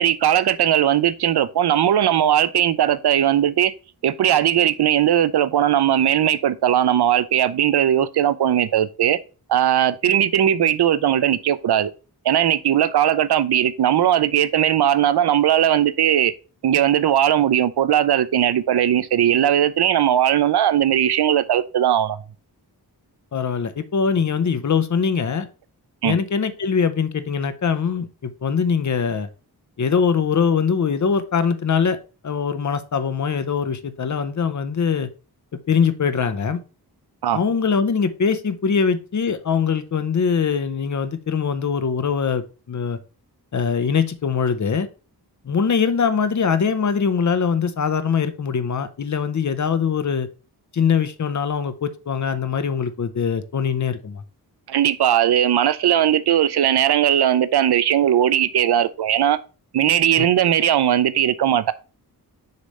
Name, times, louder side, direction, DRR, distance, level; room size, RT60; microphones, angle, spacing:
voice 1, 0.0-3.7 4.0-9.2 9.5-11.9 12.2-16.3 16.6-22.2 26.0-26.2 37.2-37.4 54.7-59.4 59.7-61.7, right 10 dB, 75° right, 0.6 m, -18 dB
voice 2, 23.3-25.5 26.0-29.3 29.8-32.0 32.2-35.1 35.7-36.6 37.3-43.0 43.5-44.9 45.4-50.3 50.7-54.2 60.2-60.3, left 6 dB, 45° left, 0.7 m, -22 dB
6.7 x 3.2 x 5.3 m
wide cardioid pair, 135°, 39 cm